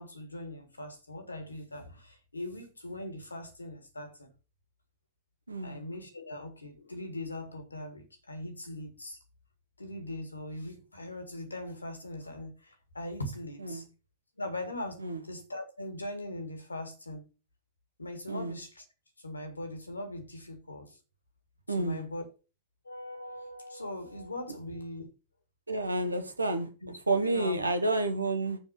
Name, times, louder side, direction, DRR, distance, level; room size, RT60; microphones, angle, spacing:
voice 1, 0.0-4.3 5.6-9.2 9.8-13.8 14.4-17.2 18.0-18.9 19.2-21.0 21.8-22.2 22.8-25.0 26.8-26.9 27.2-27.6, left 1 dB, 80° left, 2.0 m, -40 dB
voice 2, 5.5-5.8 13.6-13.8 15.0-15.2 18.3-18.5 21.7-22.0 25.7-26.7 27.1-28.6, right 2 dB, 80° right, 1.4 m, -30 dB
7.1 x 5.9 x 5.9 m
figure-of-eight pair, 90°, 0 cm